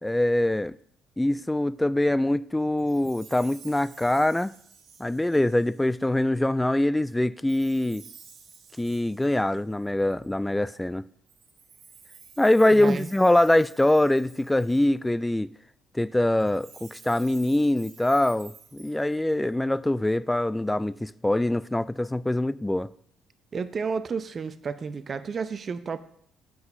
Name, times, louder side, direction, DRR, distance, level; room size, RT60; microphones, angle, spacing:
voice 1, 0.0-0.8 1.2-4.5 5.0-8.0 8.8-11.0 12.4-15.5 15.9-22.9, left 1 dB, 10° left, 0.3 m, -23 dB
Chime, 2.8-6.1 7.5-10.3 11.3-15.1 16.3-19.5, right 6 dB, 60° right, 1.5 m, -52 dB
voice 2, 12.8-13.1 23.5-26.0, right 5 dB, 40° right, 0.6 m, -31 dB
7.8 x 5.8 x 5.2 m
hypercardioid pair, 50°, 0 cm